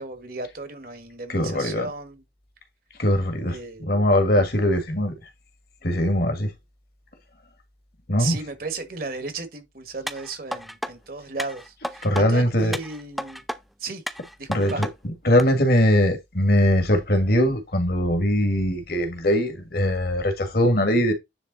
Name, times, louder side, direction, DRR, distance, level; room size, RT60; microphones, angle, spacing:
voice 1, 0.0-2.2 3.5-3.9 8.2-13.4 13.8-14.0 14.4-14.8, right 3 dB, 50° right, 1.6 m, -35 dB
voice 2, 1.3-1.9 3.0-5.2 5.8-6.5 8.1-8.4 12.0-12.8 14.5-21.1, equal, 55° left, 1.7 m, -21 dB
sound 1, 10.1-10.9 11.4-12.3 12.7-13.6 14.1-14.9 15.4-15.5, equal, ahead, 0.5 m, -32 dB
9.8 x 3.4 x 4.0 m
head